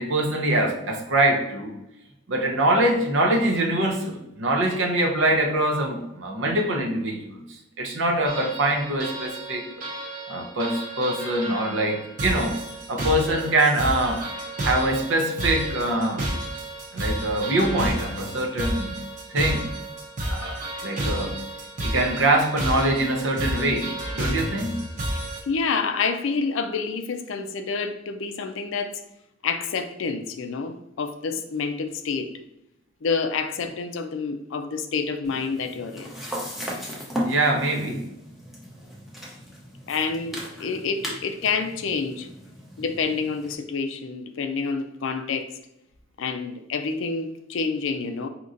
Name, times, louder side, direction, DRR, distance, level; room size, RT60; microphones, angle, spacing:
voice 1, 0.0-1.7 2.3-7.4 7.8-9.8 10.3-12.6 12.9-14.3 14.6-16.3 16.9-19.0 19.3-19.7 20.3-20.6 20.8-21.4 21.8-24.8 37.2-38.1, right 1 dB, 70° right, 1 dB, 0.8 m, -24 dB
sound 1, 8.3-25.4, right 1 dB, 40° right, 0.8 m, -31 dB
voice 2, 25.5-29.0 29.4-32.3 33.0-36.1 39.9-42.3 42.8-45.5 46.2-48.3, left 5 dB, 70° left, 8 dB, 0.4 m, -28 dB
sound 2, 35.2-43.5, equal, ahead, 0.7 m, -36 dB
5.2 x 2.9 x 2.5 m, 0.87 s
head